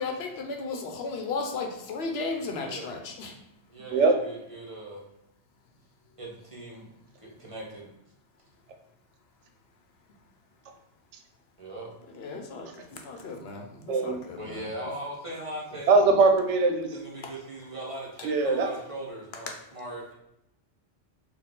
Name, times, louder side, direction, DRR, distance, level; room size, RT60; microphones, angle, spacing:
voice 1, 0.0-3.3 12.1-12.7 13.0-14.7 17.2-17.3 19.5-19.6, left 3 dB, 65° left, 3 dB, 0.8 m, -35 dB
voice 2, 3.7-5.0 6.2-6.8 7.4-7.9 11.6-11.9 14.3-15.9 16.9-19.4 19.7-20.1, right 1 dB, 30° right, -4 dB, 1.0 m, -39 dB
voice 3, 15.9-16.9 18.2-18.7, right 3 dB, 85° right, 5 dB, 0.9 m, -21 dB
4.4 x 2.3 x 3.6 m, 0.80 s
omnidirectional pair, 1.2 m